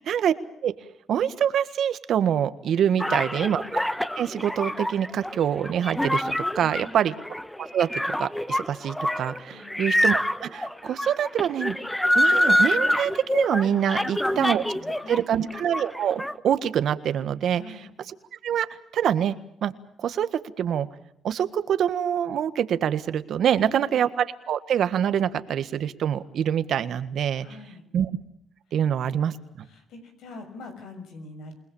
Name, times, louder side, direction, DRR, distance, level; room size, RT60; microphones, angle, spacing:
voice 1, 1.1-7.1 7.7-11.8 12.1-14.6 15.1-17.6 18.4-18.7 18.9-19.3 19.6-19.7 20.0-20.3 20.6-20.9 21.2-27.5 27.9-28.1 28.7-29.3, right 9 dB, 70° right, 12 dB, 1.6 m, -25 dB
voice 2, 2.9-3.5 6.6-7.1 9.5-9.9 13.9-14.0 14.3-14.4 14.7-15.5 17.5-17.9 23.5-24.0 27.4-27.9 28.7-31.5, left 2 dB, 85° left, 7 dB, 6.4 m, -45 dB
sound 1, 3.0-15.2 15.5-16.3, left 1 dB, 5° left, 1.1 m, -26 dB
28.0 x 19.5 x 7.2 m, 0.73 s
cardioid pair, 90°, 0 cm